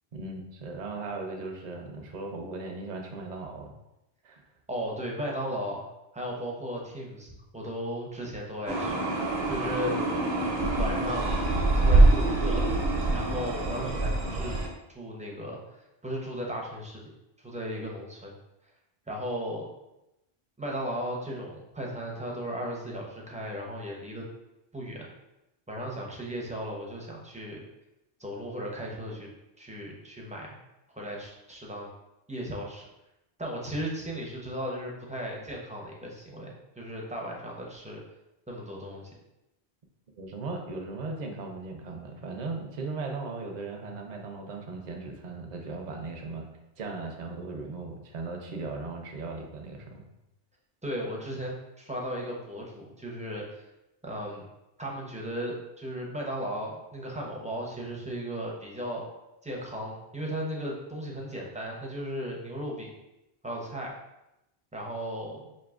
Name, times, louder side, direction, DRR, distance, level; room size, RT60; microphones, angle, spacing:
voice 1, 0.1-3.7 4.2-4.4 40.1-46.5 46.8-50.0, right 3 dB, 50° right, 2 dB, 0.6 m, -37 dB
voice 2, 4.7-5.8 6.1-9.1 9.5-10.2 10.6-11.4 11.8-12.7 13.1-14.6 14.9-15.6 16.0-17.0 17.4-18.3 19.1-19.7 20.6-24.2 24.7-25.1 25.7-27.6 28.2-29.3 29.6-30.6 30.9-31.9 32.3-32.8 33.4-38.0 38.5-39.1 50.8-53.6 54.0-54.5 54.8-59.0 59.4-62.9 63.4-63.9 64.7-65.5, equal, 10° right, -2 dB, 0.5 m, -36 dB
sound 1, 8.7-14.7, right 2 dB, 75° right, 1.0 m, -24 dB
5.2 x 2.7 x 2.4 m, 0.91 s
omnidirectional pair, 1.1 m